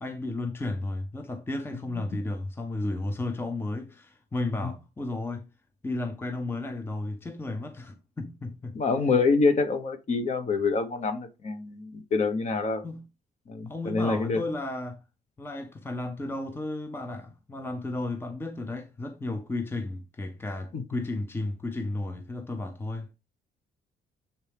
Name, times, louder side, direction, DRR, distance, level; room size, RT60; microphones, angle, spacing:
voice 1, 0.0-5.5 5.8-8.8 12.8-13.1 13.7-15.0 15.4-23.2, left 2 dB, 15° left, 0.6 m, -33 dB
voice 2, 8.7-12.8 13.5-14.4 20.7-20.8, left 4 dB, 40° left, 1.1 m, -26 dB
6.9 x 4.3 x 3.4 m
cardioid pair, 110°, 17 cm